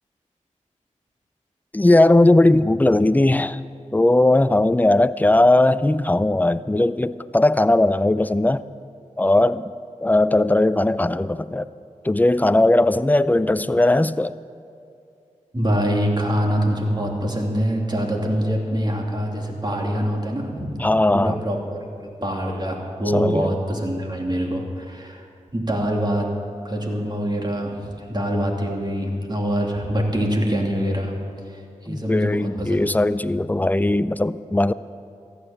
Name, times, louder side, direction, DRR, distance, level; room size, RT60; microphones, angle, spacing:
voice 1, 1.7-3.6 3.9-8.6 9.2-9.7 10.0-11.7 12.0-14.4 20.8-21.4 23.1-23.5 31.9-34.7, left 2 dB, 10° left, 15 dB, 0.5 m, -18 dB
voice 2, 15.5-20.8 21.1-25.2 25.5-26.3 26.6-31.1 31.5-32.9, equal, 30° right, 0 dB, 2.7 m, -24 dB
14.5 x 9.9 x 7.0 m, 2.5 s
cardioid pair, 40°, 14 cm